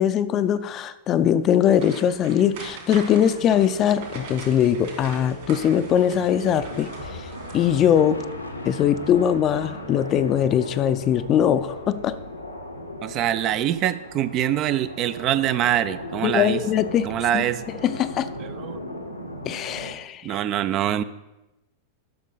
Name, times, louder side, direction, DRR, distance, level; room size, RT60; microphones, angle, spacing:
voice 1, 0.0-8.2 8.6-12.2 16.2-18.3 19.4-20.4, left 9 dB, 30° left, 13 dB, 0.5 m, -21 dB
sound 1, 1.6-8.3 8.7-8.9 9.3-9.4, right 4 dB, 55° right, 3.0 m, -41 dB
sound 2, 3.0-20.0, left 1 dB, 90° left, 1.0 m, -37 dB
voice 2, 13.0-16.6 17.0-17.6 18.4-18.8 20.2-21.0, right 11 dB, 35° right, 14 dB, 0.4 m, -24 dB
12.0 x 6.3 x 3.9 m, 0.97 s
figure-of-eight pair, 90°, 0 cm